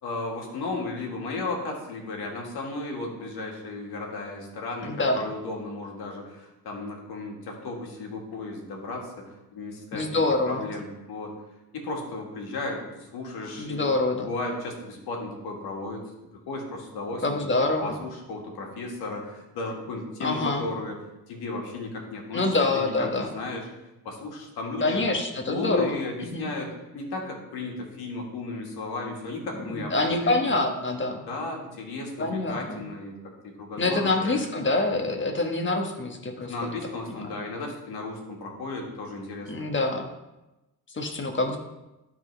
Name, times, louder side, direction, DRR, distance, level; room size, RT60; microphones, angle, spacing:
voice 1, 0.0-11.3 11.7-13.8 14.2-16.0 16.5-17.4 17.8-21.0 21.3-23.7 24.0-25.0 25.5-30.7 31.3-34.4 36.4-39.7, left 3 dB, 75° left, 0 dB, 1.9 m, -35 dB
voice 2, 4.8-5.3 9.9-10.6 13.6-14.3 17.2-18.0 20.2-20.6 22.3-23.3 24.8-26.0 26.3-26.5 29.7-31.2 32.2-32.8 33.8-36.5 39.5-40.1 40.9-41.6, left 2 dB, 30° left, 4 dB, 1.3 m, -26 dB
12.0 x 4.0 x 3.3 m, 0.99 s
cardioid pair, 80°, 38 cm